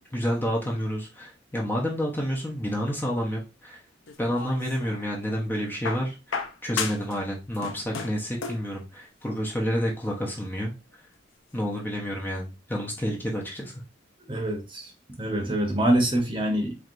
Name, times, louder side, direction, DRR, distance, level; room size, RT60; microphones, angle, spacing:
voice 1, 0.0-3.8 4.2-11.0 11.5-13.8, equal, 10° left, 0.7 m, -29 dB
sound 1, 4.1-5.1 5.8-7.2 7.5-8.7 9.8-9.9, left 5 dB, 90° left, 0.7 m, -34 dB
voice 2, 14.3-14.9 15.2-16.8, right 1 dB, 25° right, 1.0 m, -25 dB
4.6 x 3.2 x 2.5 m
head